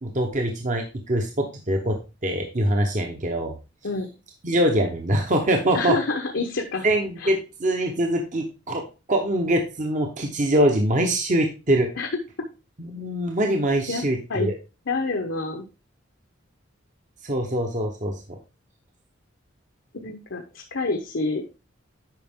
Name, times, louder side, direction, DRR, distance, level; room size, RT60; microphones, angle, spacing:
voice 1, 0.0-3.5 4.4-6.0 6.8-8.8 9.1-11.9 12.8-14.5 17.2-18.4, right 1 dB, 40° right, 3 dB, 1.0 m, -23 dB
voice 2, 5.7-6.9 7.2-7.4 12.0-12.1 13.9-14.0 14.3-14.5 14.9-15.7 19.9-21.4, left 3 dB, 75° left, 3 dB, 1.0 m, -27 dB
9.2 x 5.4 x 3.6 m, 0.30 s
head